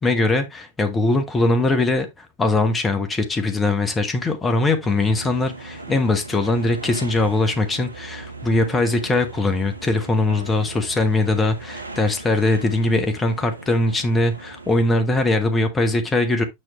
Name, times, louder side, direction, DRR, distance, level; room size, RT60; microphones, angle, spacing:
voice 1, 0.0-16.4, left 2 dB, 15° left, 1.1 m, -21 dB
sound 1, 4.8-14.9, right 3 dB, 80° right, 0.8 m, -38 dB
6.5 x 6.3 x 3.0 m
figure-of-eight pair, 90°, 0 cm